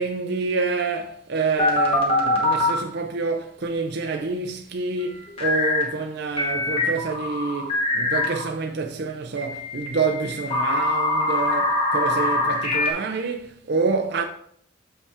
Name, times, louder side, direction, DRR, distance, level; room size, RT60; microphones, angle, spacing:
voice 1, 0.0-14.2, right 4 dB, 55° right, 0.6 m, -27 dB
sound 1, 1.6-2.8 5.4-5.9 6.4-8.5 9.4-12.9, left 2 dB, 25° left, 1.4 m, -23 dB
6.8 x 5.4 x 3.5 m
head